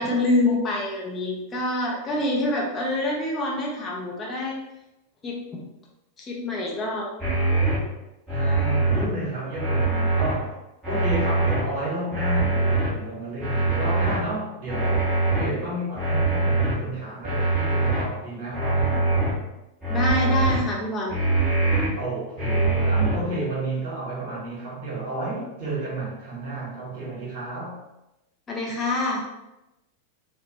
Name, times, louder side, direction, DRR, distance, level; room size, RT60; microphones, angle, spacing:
voice 1, 0.0-4.6 5.2-5.4 6.2-7.1 19.9-21.2 28.5-29.2, left 2 dB, 20° left, -3 dB, 0.6 m, -26 dB
sound 1, 7.2-7.8 8.3-9.1 9.6-10.3 10.8-11.6 12.1-12.9 13.4-14.2 14.7-15.5 16.0-16.7 17.2-18.0 18.5-19.3 19.8-20.6 21.1-21.9 22.4-23.2, right 3 dB, 5° right, 1.1 m, -23 dB
voice 2, 8.3-10.6 10.9-15.1 15.4-19.1 22.0-27.8, right 2 dB, 45° right, -5 dB, 1.2 m, -31 dB
2.8 x 2.1 x 2.8 m, 0.95 s
figure-of-eight pair, 90°, 0 cm